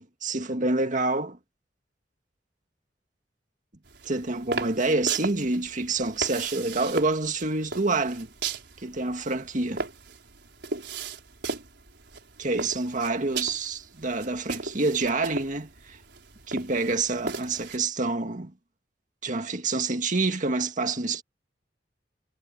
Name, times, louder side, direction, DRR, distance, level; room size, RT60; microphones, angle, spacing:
voice 1, 0.0-1.4 4.1-8.3 8.8-9.9 12.4-16.0 16.5-18.5 19.2-21.2, right 3 dB, 45° right, 1.9 m, -27 dB
sound 1, 3.8-17.8, right 4 dB, 70° right, 5.3 m, -37 dB
head